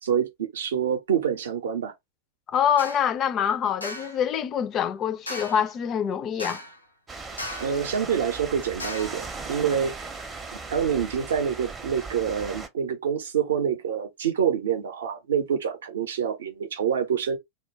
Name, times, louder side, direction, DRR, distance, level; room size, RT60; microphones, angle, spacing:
voice 1, 0.0-1.9 7.6-10.1 10.5-17.4, right 8 dB, 65° right, 0.6 m, -26 dB
voice 2, 2.5-6.6, left 8 dB, 30° left, 0.3 m, -25 dB
sound 1, 2.8-3.1 3.8-4.2 5.3-5.7 6.4-6.8 7.4-7.8 8.8-9.2, left 1 dB, 90° left, 0.6 m, -36 dB
sound 2, 7.1-12.7, right 4 dB, 15° right, 0.5 m, -38 dB
2.2 x 2.2 x 3.2 m
figure-of-eight pair, 90°, 0 cm